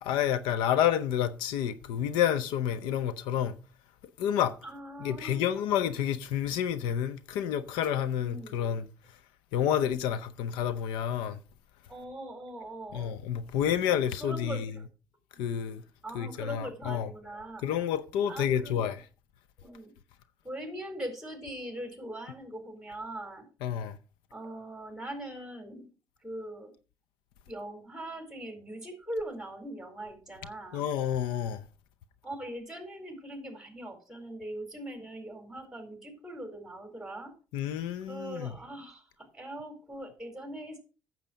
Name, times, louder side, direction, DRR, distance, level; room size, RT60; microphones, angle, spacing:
voice 1, 0.0-3.6 4.2-4.6 5.0-8.8 9.5-11.4 12.9-14.7 15.4-15.8 16.1-17.1 17.6-19.1 23.6-24.0 30.7-31.6 37.5-38.5, left 9 dB, 90° left, 0.6 m, -29 dB
voice 2, 4.6-5.5 8.2-8.7 11.9-13.1 14.2-14.9 16.0-17.9 18.3-18.9 19.6-20.0 20.4-23.5 24.3-25.9 26.2-26.7 27.5-30.8 32.2-37.3 38.1-40.8, right 1 dB, 5° right, 4.2 m, -41 dB
9.1 x 7.5 x 5.1 m
supercardioid pair, 80°, 8 cm